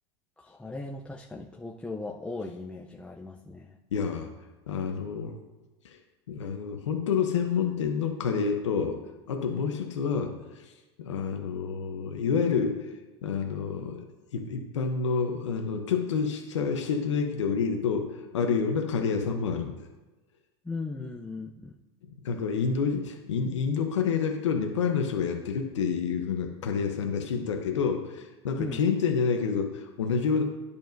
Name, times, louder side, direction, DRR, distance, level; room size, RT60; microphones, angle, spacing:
voice 1, 0.4-3.8 20.6-21.8 28.6-28.8, left 3 dB, 5° left, -1 dB, 0.6 m, -38 dB
voice 2, 3.9-4.3 4.7-5.3 5.8-6.0 6.3-9.0 9.3-10.7 11.0-12.9 13.2-14.1 14.3-19.7 22.2-30.4, left 6 dB, 90° left, 3 dB, 0.9 m, -28 dB
10.5 x 6.9 x 2.6 m, 1.1 s
hypercardioid pair, 95°, 15 cm